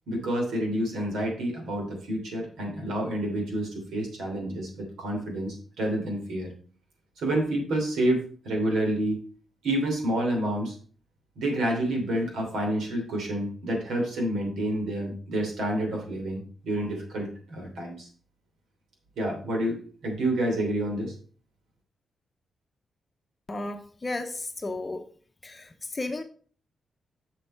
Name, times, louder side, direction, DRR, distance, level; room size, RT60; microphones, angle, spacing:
voice 1, 0.1-6.5 7.2-9.2 9.6-10.7 11.4-18.1 19.2-21.1, right 1 dB, 90° right, 1 dB, 3.1 m, -29 dB
voice 2, 23.5-25.0 25.4-26.2, left 2 dB, 25° left, 6 dB, 0.7 m, -34 dB
6.9 x 6.5 x 4.4 m, 0.44 s
cardioid pair, 125°, 0 cm